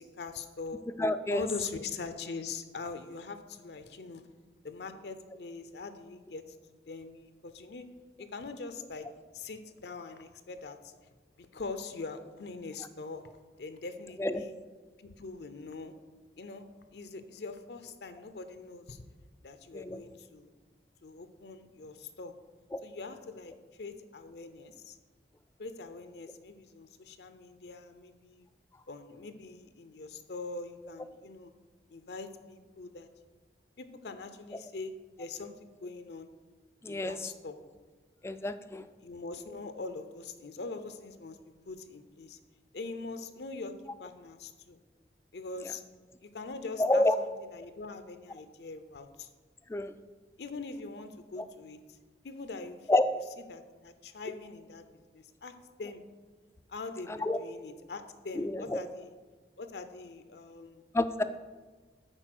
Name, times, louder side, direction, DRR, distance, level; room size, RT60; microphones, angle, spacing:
voice 1, 0.0-0.8 1.3-4.3 4.6-6.6 6.9-7.8 8.2-9.1 9.3-10.9 11.4-13.3 13.6-14.5 15.0-16.0 16.4-16.6 16.9-19.0 19.4-20.5 21.0-22.3 22.8-23.5 23.8-25.0 25.6-28.5 28.9-31.5 31.9-33.1 33.8-36.3 36.9-37.6 39.0-42.4 42.7-44.8 45.3-45.8 46.2-49.3 50.4-51.8 52.2-52.9 53.5-55.5 55.8-56.0 56.7-59.2 59.6-60.8, left 3 dB, 70° left, 9 dB, 0.6 m, -42 dB
voice 2, 1.0-1.4 14.2-14.4 19.7-20.0 22.7-22.8 36.8-37.2 38.2-38.9 46.8-47.1 49.7-50.0 52.9-53.1 57.1-57.4 58.4-58.8 60.9-61.2, left 1 dB, 15° left, 12 dB, 0.3 m, -28 dB
9.0 x 4.3 x 6.0 m, 1.3 s
head